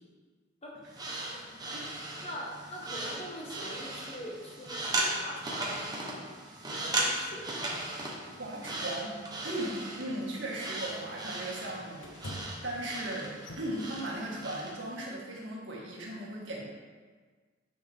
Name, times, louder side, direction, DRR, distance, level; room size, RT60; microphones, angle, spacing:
sound 1, 0.9-14.8, right 2 dB, 20° right, 1.2 m, -37 dB
voice 1, 2.2-6.0 6.7-7.7, equal, 35° left, -2 dB, 1.5 m, -43 dB
sound 2, 6.8-7.0 8.2-8.8 9.4-9.7 10.4-10.6 10.9-12.8 13.3-13.8, equal, 80° left, 1.1 m, -46 dB
voice 2, 8.4-9.2 9.4-16.6, right 1 dB, 70° right, -3 dB, 2.0 m, -37 dB
9.6 x 6.1 x 3.6 m, 1.5 s
head